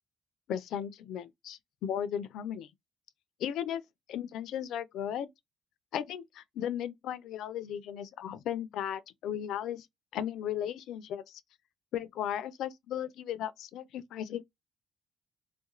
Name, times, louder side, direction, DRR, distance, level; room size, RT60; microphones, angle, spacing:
voice 1, 0.5-2.7 3.4-3.8 4.1-5.3 5.9-9.9 10.1-11.4 11.9-14.4, left 10 dB, 75° left, 0.3 m, -36 dB
2.4 x 2.1 x 2.9 m
supercardioid pair, 65°, 0 cm